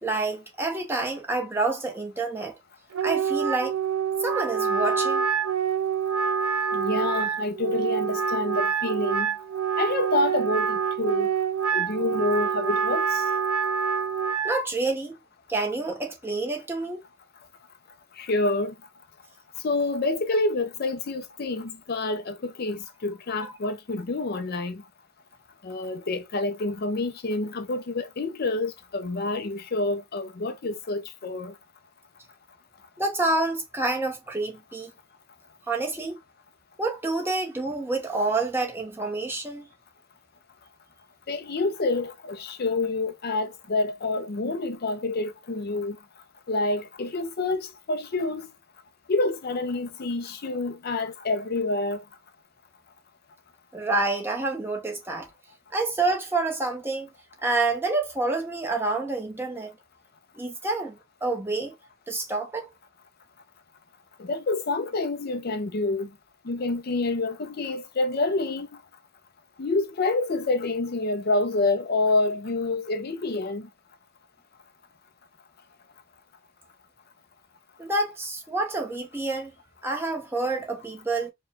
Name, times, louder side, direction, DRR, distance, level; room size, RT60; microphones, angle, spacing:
voice 1, 0.0-2.5 3.0-3.7 4.2-5.3 12.1-12.2 14.4-15.1 15.5-17.0 33.0-34.9 35.7-36.2 36.8-39.7 53.7-55.3 55.7-57.1 57.4-59.7 60.3-61.7 62.1-62.7 77.8-79.5 79.8-81.3, right 2 dB, 10° right, 0.9 m, -28 dB
Wind instrument woodwind instrument, 2.9-14.6, right 6 dB, 85° right, 0.5 m, -26 dB
voice 2, 6.7-9.3 9.8-11.3 11.7-13.2 18.2-18.7 19.6-24.8 25.6-31.5 41.3-46.0 46.5-48.5 49.1-52.0 64.2-66.1 66.5-68.7 69.6-73.7, left 2 dB, 45° left, 0.5 m, -27 dB
4.8 x 2.2 x 3.3 m
head